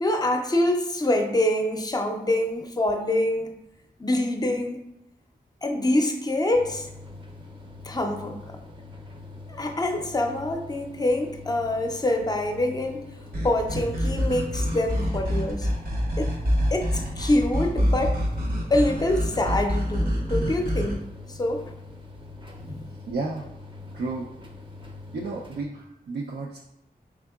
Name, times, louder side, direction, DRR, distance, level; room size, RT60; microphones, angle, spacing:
voice 1, 0.0-3.5 4.0-4.8 5.6-6.9 7.8-8.6 9.5-13.1 13.4-15.7 16.2-16.3 16.7-16.9 17.2-18.1 18.7-21.0 21.3-21.6 22.6-22.9, left 1 dB, 25° left, 4 dB, 0.5 m, -25 dB
sound 1, 6.5-25.6, left 3 dB, 30° right, 0.6 m, -44 dB
sound 2, 13.3-21.0, equal, 65° right, 0.9 m, -26 dB
voice 2, 23.1-23.5 23.9-24.3 25.1-26.6, right 3 dB, 85° right, -1 dB, 0.4 m, -32 dB
4.7 x 3.5 x 2.3 m, 0.86 s
wide cardioid pair, 100°, 16 cm